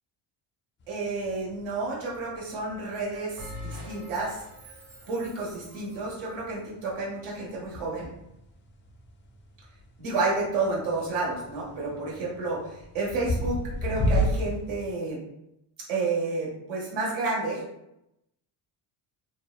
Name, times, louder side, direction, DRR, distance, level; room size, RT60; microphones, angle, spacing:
sound 1, 0.8-14.9, equal, 25° left, 0.3 m, -34 dB
voice 1, 0.9-4.4 5.1-8.1 10.0-15.2 15.9-17.6, right 3 dB, 75° right, -5 dB, 1.3 m, -30 dB
Bell, 3.4-6.2, left 1 dB, 50° right, 1.1 m, -43 dB
2.7 x 2.0 x 2.3 m, 0.83 s
supercardioid pair, 80°, 48 cm